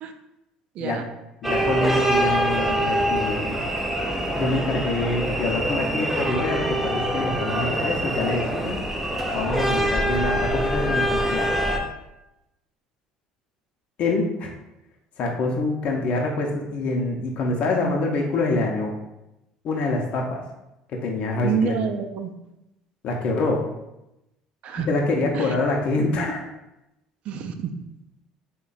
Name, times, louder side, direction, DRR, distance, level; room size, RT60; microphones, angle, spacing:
voice 1, 0.7-1.0 21.4-22.3 24.6-24.9 25.3-25.6 27.3-27.7, right 7 dB, 60° right, 6 dB, 0.4 m, -27 dB
voice 2, 1.4-3.7 4.3-8.8 9.3-11.5 14.0-14.5 15.2-19.0 19.6-20.4 20.9-21.7 23.0-23.7 24.7-26.4, left 2 dB, 55° left, 1 dB, 0.6 m, -25 dB
sound 1, 1.4-11.8, right 1 dB, 5° right, 0.5 m, -24 dB
3.3 x 2.2 x 3.8 m, 0.91 s
supercardioid pair, 90°, 2 cm